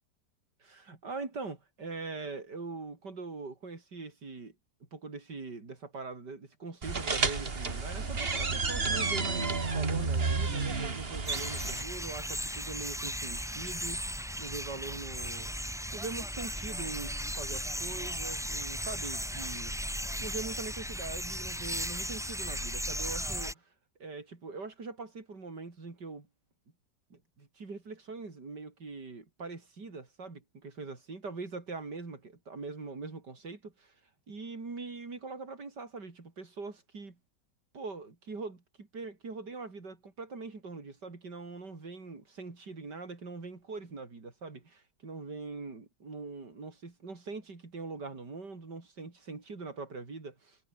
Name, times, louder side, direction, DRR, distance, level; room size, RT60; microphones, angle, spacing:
voice 1, 0.6-4.6 4.9-15.5 15.9-19.7 20.2-23.7 24.0-26.3 27.1-33.9 34.3-37.2 37.7-50.6, right 3 dB, 75° right, 4.6 m, -42 dB
sound 1, 6.8-11.8, right 4 dB, 35° right, 2.2 m, -31 dB
sound 2, 11.3-23.5, equal, ahead, 3.0 m, -36 dB
omnidirectional pair, 1.8 m